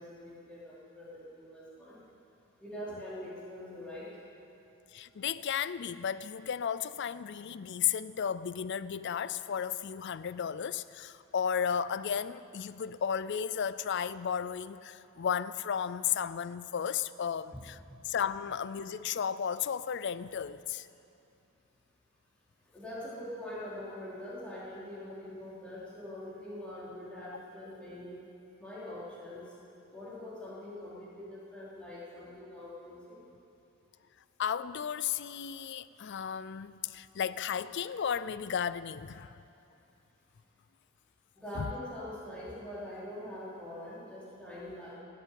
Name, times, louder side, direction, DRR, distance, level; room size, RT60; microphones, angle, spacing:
voice 1, 0.0-2.0 2.6-4.1 17.5-17.6 22.7-28.2 28.6-29.4 29.9-33.2 41.4-44.9, left 1 dB, 5° left, 4.5 m, -43 dB
voice 2, 4.9-17.8 18.0-20.9 34.4-39.3 41.6-41.7, left 8 dB, 55° left, 0.4 m, -34 dB
18.5 x 8.4 x 8.6 m
head